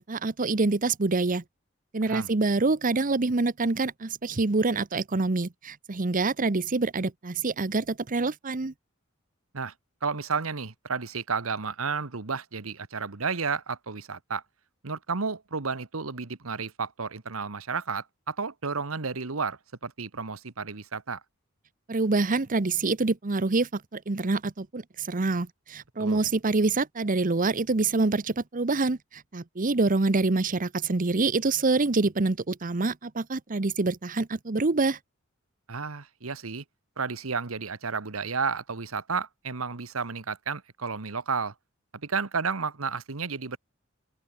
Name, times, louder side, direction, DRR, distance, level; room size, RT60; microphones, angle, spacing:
voice 1, 0.0-1.4 1.9-8.7 21.9-35.0, right 3 dB, 40° right, 0.9 m, -26 dB
voice 2, 10.0-14.4 14.8-21.2 26.0-26.2 35.7-36.6 37.0-41.5 42.0-43.6, right 5 dB, 90° right, 1.3 m, -32 dB
open air
head